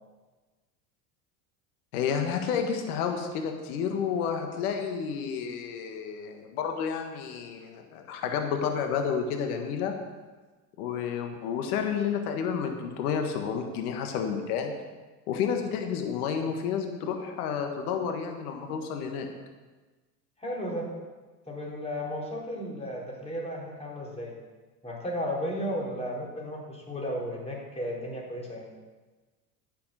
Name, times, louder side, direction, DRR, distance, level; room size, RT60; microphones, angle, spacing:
voice 1, 1.9-9.9 10.8-14.7 15.3-19.3, left 7 dB, 70° left, 4 dB, 1.6 m, -30 dB
voice 2, 20.4-20.9 21.5-24.3 24.8-28.7, equal, 15° left, -3 dB, 4.3 m, -34 dB
9.9 x 6.9 x 8.1 m, 1.3 s
hypercardioid pair, 80°, 45 cm